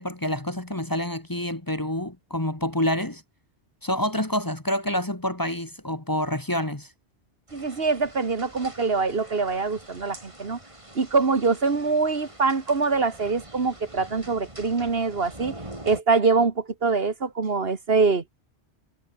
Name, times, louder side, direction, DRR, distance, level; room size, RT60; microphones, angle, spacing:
voice 1, 0.0-3.2 3.8-6.9, left 1 dB, 20° left, 1.7 m, -27 dB
sound 1, 7.5-16.0, right 1 dB, 30° right, 4.2 m, -45 dB
voice 2, 7.5-10.6 11.0-15.5 15.8-18.2, right 4 dB, 65° right, 1.9 m, -24 dB
omnidirectional pair, 1.1 m